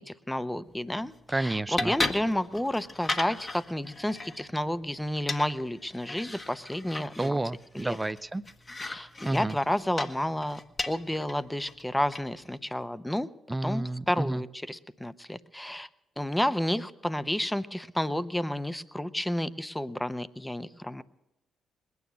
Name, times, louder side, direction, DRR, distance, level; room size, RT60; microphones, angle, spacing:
voice 1, 0.0-7.4 7.7-8.0 8.8-10.6 10.9-13.3 13.6-15.9 16.2-21.0, left 1 dB, 10° left, 14 dB, 0.9 m, -31 dB
sound 1, 0.6-12.6, left 2 dB, 30° left, 1.3 m, -38 dB
voice 2, 1.3-1.9 7.2-8.4 9.2-9.6 13.5-14.4, right 2 dB, 20° right, 15 dB, 0.6 m, -30 dB
20.5 x 9.6 x 7.0 m, 0.95 s
hypercardioid pair, 50°, 0 cm